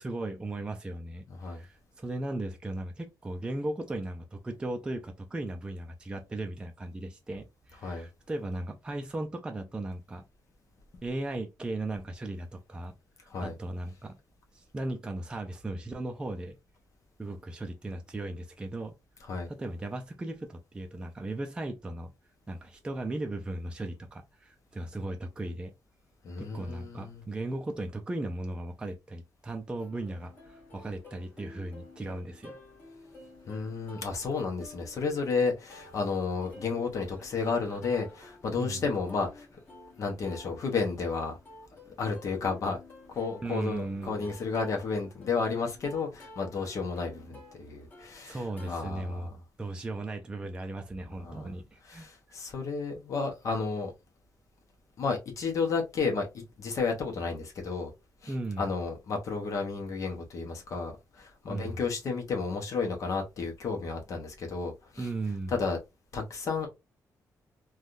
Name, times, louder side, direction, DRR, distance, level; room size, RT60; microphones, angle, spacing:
voice 1, 0.0-10.2 11.0-12.9 13.4-14.2 14.5-16.6 17.2-18.9 19.5-22.1 22.5-25.7 26.4-32.6 38.6-38.8 43.4-44.3 48.3-49.3 49.6-52.1 58.3-58.6 61.5-61.8 65.0-65.5, right 2 dB, 15° right, 0.4 m, -37 dB
voice 2, 26.2-27.2 33.5-39.6 40.0-41.4 41.9-42.8 43.1-49.4 51.2-51.5 51.9-53.9 55.0-57.9 58.2-65.1 65.5-65.8 66.1-66.7, left 4 dB, 55° left, 0.9 m, -32 dB
Plucked string instrument, 29.8-48.7, left 2 dB, 25° left, 1.4 m, -52 dB
3.4 x 2.3 x 2.5 m
cardioid pair, 140°, 7 cm